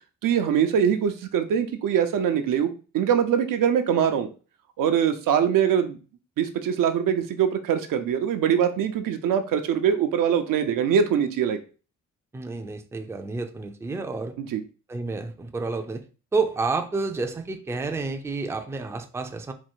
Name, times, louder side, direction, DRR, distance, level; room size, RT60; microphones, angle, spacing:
voice 1, 0.2-4.3 4.8-6.0 6.4-11.6 14.4-14.6, right 8 dB, 80° right, 0.8 m, -23 dB
voice 2, 12.3-14.4 14.9-16.0 16.3-19.5, right 3 dB, 10° right, 0.4 m, -29 dB
4.5 x 2.5 x 4.5 m
cardioid pair, 130°, 32 cm